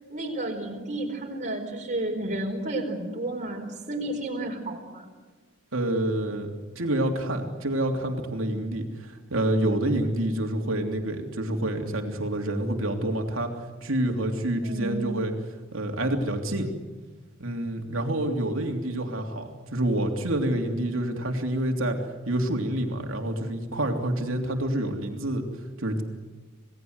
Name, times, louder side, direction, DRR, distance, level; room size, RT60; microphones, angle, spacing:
voice 1, 0.1-5.1 14.6-15.1, right 1 dB, 35° right, 1 dB, 4.6 m, -32 dB
voice 2, 5.7-13.5 13.8-15.3 15.7-16.7 17.4-22.0 22.3-25.5 25.8-26.0, right 1 dB, 70° right, 3 dB, 3.1 m, -27 dB
28.0 x 18.5 x 8.0 m, 1.3 s
head